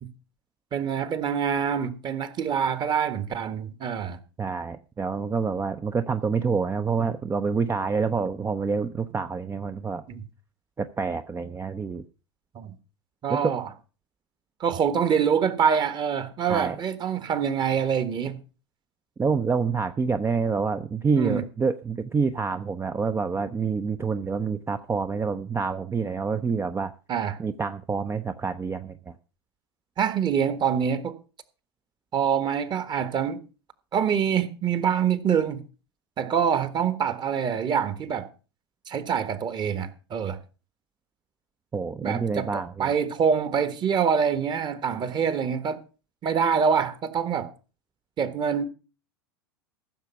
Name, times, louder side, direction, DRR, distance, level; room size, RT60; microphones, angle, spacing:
voice 1, 0.7-4.2 10.1-10.2 12.5-12.7 13.2-13.6 14.6-18.4 21.2-21.4 27.1-27.4 30.0-31.1 32.1-33.4 33.9-35.6 36.2-38.3 38.9-40.4 42.0-45.8 46.2-47.5 48.2-48.6, right 7 dB, 30° right, 1.5 m, -25 dB
voice 2, 4.4-10.0 10.8-12.0 13.3-13.5 16.5-16.8 19.2-26.9 27.4-29.1 41.7-42.9, right 5 dB, 15° right, 0.6 m, -27 dB
15.0 x 6.8 x 5.8 m
figure-of-eight pair, 85°, 14 cm